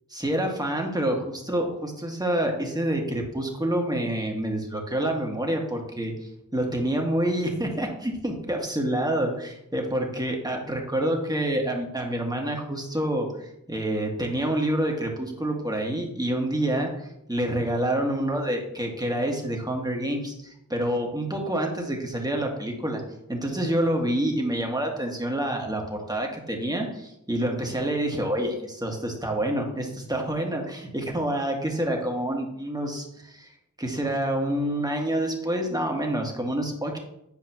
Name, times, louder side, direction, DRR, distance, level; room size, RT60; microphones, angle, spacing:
voice 1, 0.1-23.0 23.3-33.5 33.8-37.0, right 1 dB, 10° right, 1 dB, 1.8 m, -27 dB
10.0 x 4.8 x 3.0 m, 0.80 s
cardioid pair, 45°, 32 cm